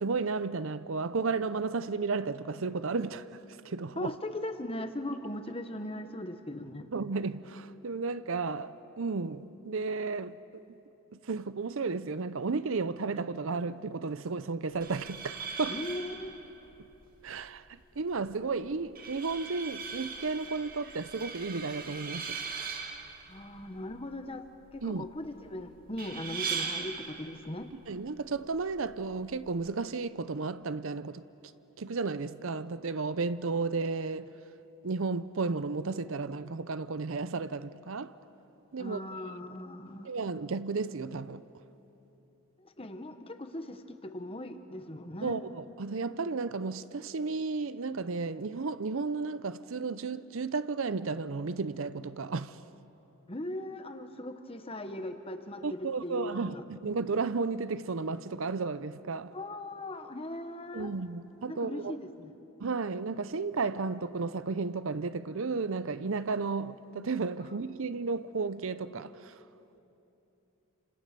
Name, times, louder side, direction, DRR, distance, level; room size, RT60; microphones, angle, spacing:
voice 1, 0.0-3.3 3.6-4.1 6.9-10.6 11.1-15.8 17.2-22.4 24.8-25.0 27.7-31.2 31.8-34.3 34.8-38.1 38.7-39.0 40.0-41.4 45.2-52.6 55.6-59.3 60.7-62.0 62.6-69.3, right 4 dB, 60° right, 0.6 m, -33 dB
voice 2, 4.0-6.9 15.7-16.3 23.3-24.5 24.7-27.7 38.8-40.1 42.6-45.5 53.3-56.6 59.3-60.9 61.5-62.4, left 1 dB, 25° left, 1.2 m, -39 dB
sound 1, 14.7-29.7, right 5 dB, 40° right, 1.7 m, -41 dB
28.5 x 26.5 x 6.8 m
head